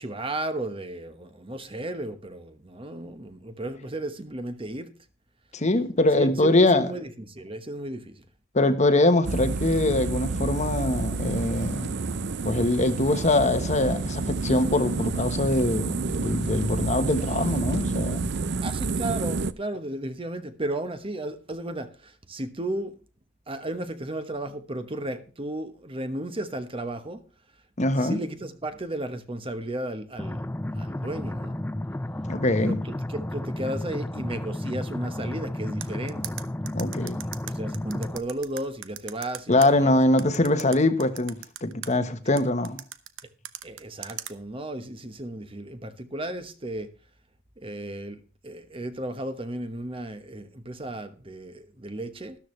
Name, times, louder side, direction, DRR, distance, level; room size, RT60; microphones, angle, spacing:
voice 1, 0.0-4.9 6.1-8.2 18.6-22.9 23.5-27.2 28.0-30.4 30.7-31.6 32.6-36.4 37.5-40.0 43.6-46.9 47.6-52.4, right 1 dB, 30° right, 1.1 m, -34 dB
voice 2, 5.5-6.9 8.5-12.0 12.4-18.3 27.8-28.2 32.3-32.8 36.7-37.2 39.5-42.8, left 2 dB, 35° left, 1.2 m, -23 dB
sound 1, 9.2-19.5, right 3 dB, 60° right, 0.6 m, -29 dB
sound 2, 30.2-38.2, left 1 dB, 10° left, 0.4 m, -32 dB
sound 3, 35.8-39.7 40.2-41.9 42.4-44.3, right 11 dB, 80° right, 0.9 m, -38 dB
13.0 x 12.5 x 3.2 m
head